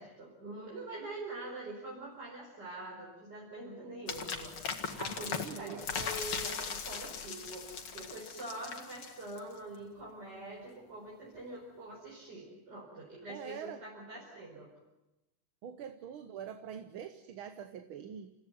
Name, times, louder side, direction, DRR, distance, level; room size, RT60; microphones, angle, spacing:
voice 1, 0.0-7.7 7.9-14.7, right 2 dB, 50° right, -4 dB, 5.7 m, -44 dB
sound 1, 4.1-9.6, left 6 dB, 90° left, 2.8 m, -39 dB
voice 2, 5.3-5.8 13.3-13.9 15.6-18.3, right 8 dB, 75° right, 9 dB, 1.9 m, -44 dB
29.5 x 16.5 x 9.3 m, 0.98 s
omnidirectional pair, 2.3 m